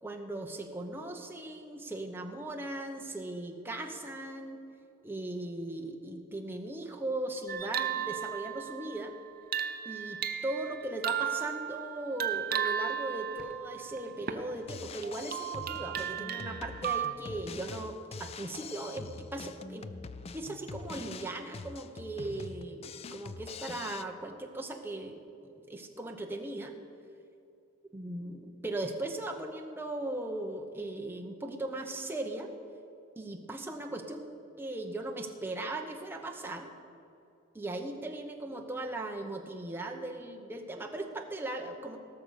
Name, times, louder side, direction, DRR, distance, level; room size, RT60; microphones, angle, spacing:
voice 1, 0.0-4.6 5.0-9.1 9.8-19.9 20.3-26.7 27.9-32.5 33.2-34.3 34.6-36.7 37.5-42.0, right 2 dB, 10° right, 2 dB, 0.9 m, -38 dB
sound 1, 7.5-14.5 15.0-17.1, right 9 dB, 40° right, 0.6 m, -35 dB
Drum kit, 14.6-24.0, left 4 dB, 30° left, 0.3 m, -44 dB
17.5 x 6.7 x 6.5 m, 2.6 s
head